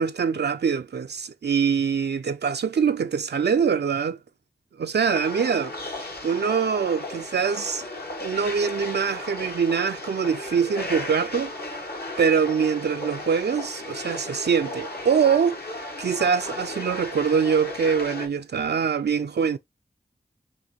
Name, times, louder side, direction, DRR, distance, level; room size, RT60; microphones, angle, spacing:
voice 1, 0.0-4.2 4.8-7.9 8.2-11.7 12.2-15.6 16.0-19.6, right 6 dB, 80° right, 0.4 m, -24 dB
sound 1, 5.1-18.3, left 2 dB, 70° left, 1.5 m, -35 dB
7.2 x 2.6 x 2.8 m
wide cardioid pair, 45°, 17 cm